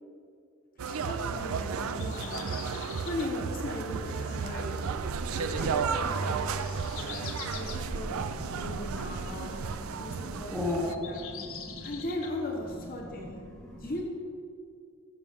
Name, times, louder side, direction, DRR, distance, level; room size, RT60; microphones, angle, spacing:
voice 1, 0.8-2.6 3.1-4.8 5.3-9.6 10.0-11.2 11.8-13.4 13.7-14.0, left 1 dB, 40° left, 0 dB, 1.0 m, -38 dB
sound 1, 0.8-10.9, right 5 dB, 70° right, 0.4 m, -33 dB
sound 2, 1.9-3.3 5.5-5.7 6.1-7.8 10.3-12.3, left 8 dB, 65° left, 0.7 m, -44 dB
voice 2, 8.0-11.9 12.7-14.0, left 2 dB, ahead, -4 dB, 1.3 m, -38 dB
12.0 x 7.2 x 3.6 m, 2.4 s
head